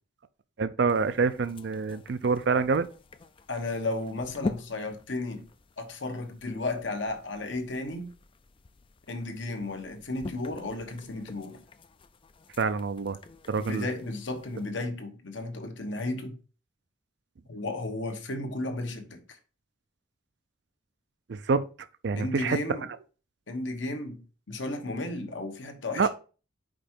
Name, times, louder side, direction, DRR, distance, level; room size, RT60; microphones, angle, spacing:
voice 1, 0.6-2.9 12.6-13.2 13.5-13.9 21.3-21.7 22.0-22.6 26.0-26.1, right 4 dB, 60° right, 0.4 m, -26 dB
sound 1, 0.9-14.7, left 3 dB, 25° left, 0.4 m, -45 dB
voice 2, 3.5-5.4 5.8-8.1 9.1-11.6 13.6-16.3 17.5-19.4 22.1-22.9 23.5-26.1, left 2 dB, 70° left, 1.2 m, -34 dB
5.1 x 4.7 x 4.4 m
head